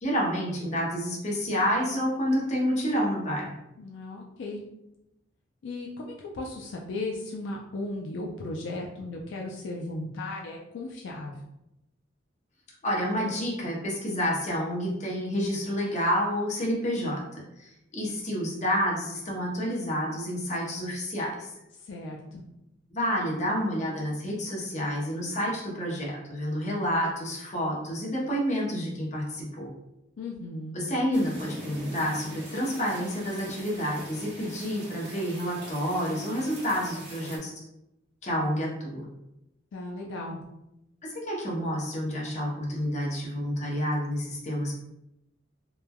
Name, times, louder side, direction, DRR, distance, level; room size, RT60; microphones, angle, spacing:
voice 1, 0.0-3.6 12.8-21.5 22.9-29.7 30.7-37.5 38.2-39.0 41.0-44.7, equal, 40° left, -3 dB, 0.7 m, -29 dB
voice 2, 3.8-4.6 5.6-11.4 21.8-22.4 30.2-30.8 39.7-40.4, left 2 dB, 70° left, -1 dB, 0.3 m, -36 dB
sound 1, 31.1-37.4, right 1 dB, 55° right, 0.9 m, -43 dB
3.1 x 2.1 x 2.2 m, 0.87 s
head